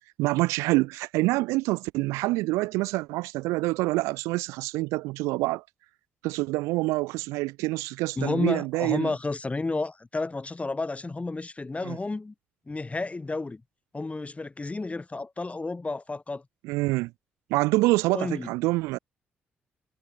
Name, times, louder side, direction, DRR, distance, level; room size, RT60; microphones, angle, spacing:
voice 1, 0.2-5.6 6.2-9.1 11.8-12.0 16.6-17.1 17.5-19.0, right 21 dB, 70° right, 0.7 m, -26 dB
voice 2, 8.2-12.3 12.7-13.6 13.9-16.4 18.1-18.5, left 3 dB, 25° left, 6.1 m, -31 dB
figure-of-eight pair, 40°, 5 cm